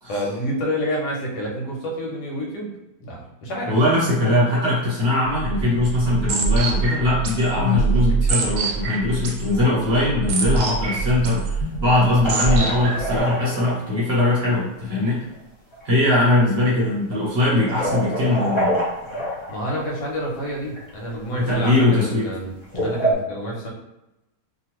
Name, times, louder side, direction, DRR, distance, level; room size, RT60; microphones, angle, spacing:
voice 1, 0.1-2.7 3.0-3.8 19.5-22.6 22.8-23.7, equal, 85° left, -2 dB, 1.4 m, -28 dB
voice 2, 3.7-15.3 15.8-18.7 21.4-22.3, left 2 dB, 50° right, -6 dB, 0.9 m, -21 dB
sound 1, 5.3-13.2, right 4 dB, 90° right, 1.2 m, -24 dB
sound 2, 10.7-10.8 11.9-14.0 15.3-15.4 15.7-15.9 16.7-16.9 17.6-19.8 20.6-21.0 21.4-21.7 22.6-23.1, right 1 dB, 30° left, 0.5 m, -26 dB
2.8 x 2.5 x 3.0 m, 0.91 s
omnidirectional pair, 1.7 m